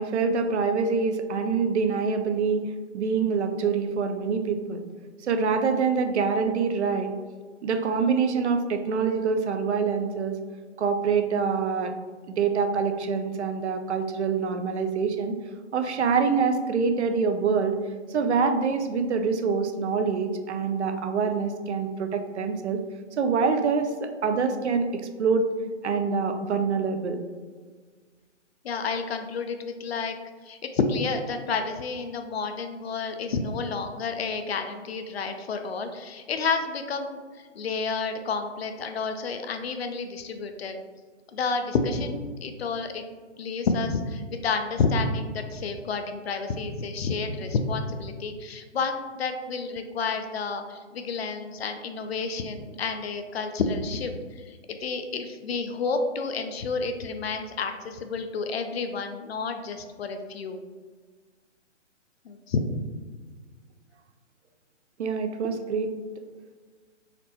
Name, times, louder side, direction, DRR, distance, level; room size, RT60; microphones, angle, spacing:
voice 1, 0.0-2.6 2.9-4.8 5.2-7.1 7.6-10.4 10.8-11.9 12.3-15.4 15.7-17.8 18.1-22.8 23.2-24.9 25.2-25.5 25.8-27.2 65.0-65.9, right 5 dB, 65° right, 6 dB, 0.6 m, -25 dB
voice 2, 28.6-30.2 30.4-40.8 41.3-43.0 43.4-60.6 62.2-62.6, left 4 dB, 55° left, 6 dB, 0.5 m, -30 dB
4.2 x 3.0 x 2.9 m, 1.5 s
hypercardioid pair, 155°, 37 cm